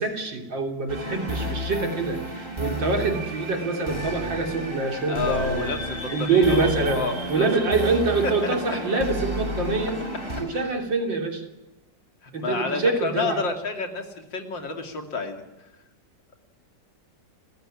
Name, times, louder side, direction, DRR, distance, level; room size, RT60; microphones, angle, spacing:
voice 1, 0.0-5.7 6.1-7.0 7.3-10.0 10.4-11.4 12.3-13.4, right 3 dB, 85° right, 4 dB, 3.9 m, -25 dB
sound 1, 0.9-10.4, equal, 30° right, 5.2 m, -32 dB
voice 2, 5.1-7.5 8.2-8.8 10.5-10.7 12.2-15.4, left 4 dB, 80° left, 5 dB, 3.4 m, -30 dB
29.5 x 15.0 x 9.9 m, 1.0 s
omnidirectional pair, 2.0 m